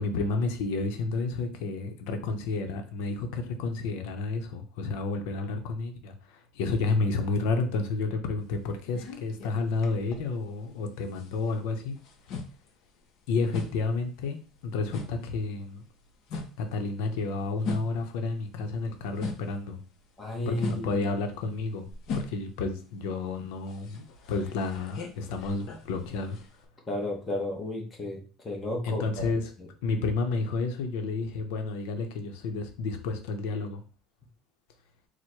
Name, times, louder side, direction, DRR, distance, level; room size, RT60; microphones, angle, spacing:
voice 1, 0.0-12.0 13.3-14.4 14.6-15.8 16.6-19.8 20.5-26.4 28.8-29.5 29.8-33.8, left 3 dB, 75° left, 5 dB, 0.7 m, -31 dB
sound 1, 8.4-10.8 11.0-19.7 20.0-26.6, left 4 dB, 40° left, 0.7 m, -40 dB
voice 2, 20.2-21.1 26.9-29.0 29.6-29.7, left 1 dB, 15° left, 0 dB, 0.8 m, -33 dB
4.5 x 2.1 x 4.5 m, 0.37 s
cardioid pair, 180°, 0 cm